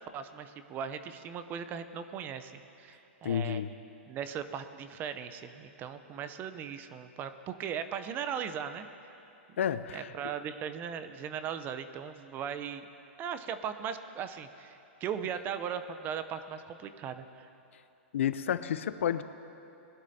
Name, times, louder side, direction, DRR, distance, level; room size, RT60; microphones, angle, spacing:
voice 1, 0.0-3.6 4.1-8.9 9.5-9.6 9.9-12.9 13.2-17.5, right 8 dB, 30° right, 11 dB, 0.6 m, -38 dB
voice 2, 3.2-3.7 9.6-10.1 18.1-19.2, left 9 dB, 80° left, 13 dB, 0.5 m, -30 dB
20.0 x 11.5 x 2.8 m, 2.8 s
hypercardioid pair, 135°, 7 cm